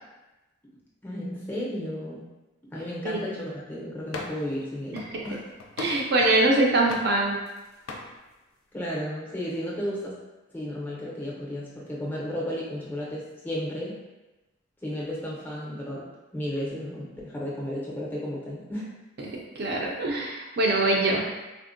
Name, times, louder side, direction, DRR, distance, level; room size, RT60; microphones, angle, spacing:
voice 1, 1.0-2.2 2.7-5.4 8.7-10.2 10.5-14.0 14.8-16.1 16.3-18.9, equal, 10° left, -6 dB, 0.5 m, -33 dB
sound 1, 4.1-4.5 5.0-6.4 6.9-7.6 7.9-8.1, left 3 dB, 85° left, 0.4 m, -39 dB
voice 2, 4.9-5.3 5.8-7.4 19.2-21.3, right 2 dB, 50° right, -2 dB, 0.4 m, -23 dB
3.5 x 2.1 x 2.5 m, 1.1 s
head